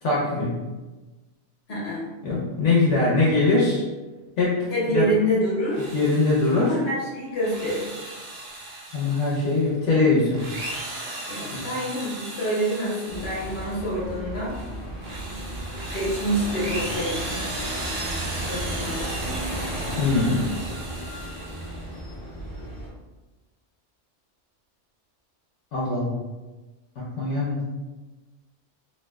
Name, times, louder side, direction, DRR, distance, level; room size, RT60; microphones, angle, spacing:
voice 1, 0.0-0.5 2.2-3.8 4.4-4.6 4.9-5.0 5.9-6.7 8.9-10.4 11.5-11.6 20.0-20.4 25.7-26.1 27.2-27.6, left 3 dB, 80° left, -6 dB, 1.0 m, -21 dB
voice 2, 1.7-2.0 4.7-5.8 6.6-8.0 11.3-14.5 15.9-17.2 18.5-19.1, equal, 60° left, -6 dB, 1.2 m, -27 dB
Drill, 5.6-6.8 7.3-9.7 10.2-14.0 14.4-21.9, right 2 dB, 65° right, 0.8 m, -36 dB
sound 1, 13.1-22.9, right 1 dB, 25° left, 0.9 m, -34 dB
3.2 x 2.6 x 2.2 m, 1.2 s
omnidirectional pair, 1.2 m